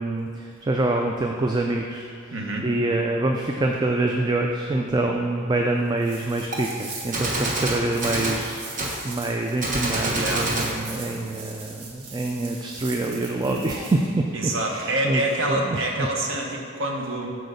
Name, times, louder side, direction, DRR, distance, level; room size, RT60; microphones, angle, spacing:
voice 1, 0.0-2.3 2.6-16.1, right 2 dB, 20° right, 2 dB, 0.3 m, -26 dB
voice 2, 2.3-2.7 10.1-10.5 14.3-17.3, right 1 dB, 60° right, 0 dB, 1.1 m, -26 dB
sound 1, 6.0-14.1, right 4 dB, 90° right, 1.3 m, -41 dB
Gunshot gunfire, 6.5-6.6 7.1-8.4 8.8-9.0 9.6-10.7, right 1 dB, 35° right, 1.0 m, -26 dB
6.3 x 4.6 x 6.6 m, 2.4 s
head